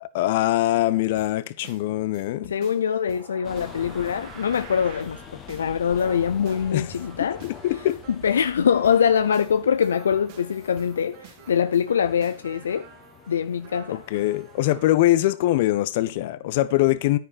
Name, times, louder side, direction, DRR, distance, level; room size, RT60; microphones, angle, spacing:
voice 1, 0.0-2.5 6.7-6.9 7.2-8.0 13.9-17.2, left 15 dB, 60° left, 1.1 m, -23 dB
sound 1, 1.2-15.0, right 7 dB, 55° right, 3.2 m, -47 dB
voice 2, 2.5-5.2 5.5-7.4 8.1-12.9 13.3-14.0, left 7 dB, 90° left, 0.6 m, -23 dB
sound 2, 3.4-15.0, left 8 dB, 30° left, 1.5 m, -45 dB
10.0 x 9.3 x 4.3 m
hypercardioid pair, 120°, 0 cm